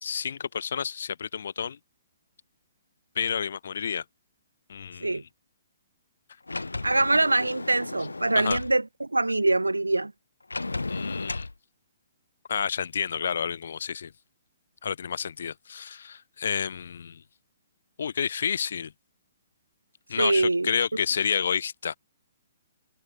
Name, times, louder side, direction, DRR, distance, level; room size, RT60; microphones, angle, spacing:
voice 1, 0.0-1.8 3.2-4.0 4.7-5.2 8.4-8.6 10.9-11.5 12.5-14.1 14.8-17.2 18.0-18.9 20.1-22.0, left 7 dB, 60° left, 1.7 m, -30 dB
Sliding door, 6.5-8.7 10.5-11.5, left 3 dB, 80° left, 1.8 m, -34 dB
voice 2, 6.8-10.1 20.2-20.7, right 2 dB, 85° right, 0.7 m, -24 dB
figure-of-eight pair, 125°, 0 cm